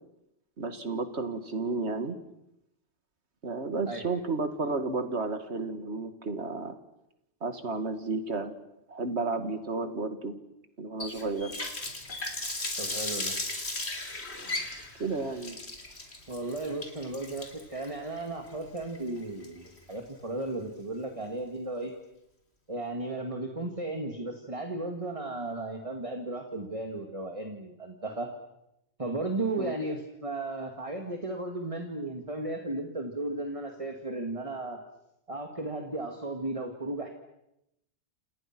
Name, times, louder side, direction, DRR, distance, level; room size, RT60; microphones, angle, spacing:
voice 1, 0.6-2.2 3.4-6.8 7.4-10.4 10.8-11.5 15.0-15.6 29.6-29.8, right 3 dB, 75° right, 9 dB, 2.4 m, -32 dB
Water tap faucet, 11.0-19.9, left 2 dB, 70° left, 3.8 m, -36 dB
voice 2, 12.8-13.4 16.3-21.9 22.7-28.3 29.0-34.8 35.3-37.1, right 2 dB, 30° right, 3 dB, 2.3 m, -35 dB
28.5 x 28.5 x 6.1 m, 0.86 s
omnidirectional pair, 1.1 m